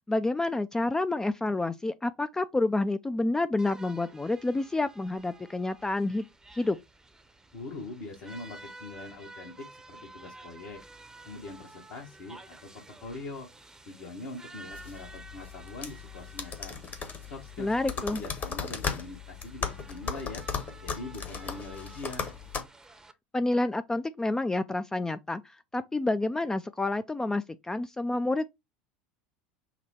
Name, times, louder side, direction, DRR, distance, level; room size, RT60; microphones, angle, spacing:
voice 1, 0.1-6.2 6.5-6.8 17.6-18.2 23.3-28.4, left 2 dB, 10° left, 0.3 m, -29 dB
sound 1, 3.6-23.1, right 2 dB, 10° right, 0.7 m, -51 dB
voice 2, 7.5-10.8 11.2-13.5 13.9-16.8 17.3-20.4 20.8-22.3, left 2 dB, 60° left, 1.3 m, -42 dB
sound 2, 14.7-22.6, left 6 dB, 35° left, 1.1 m, -37 dB
5.8 x 2.2 x 4.2 m
figure-of-eight pair, 75°, 5 cm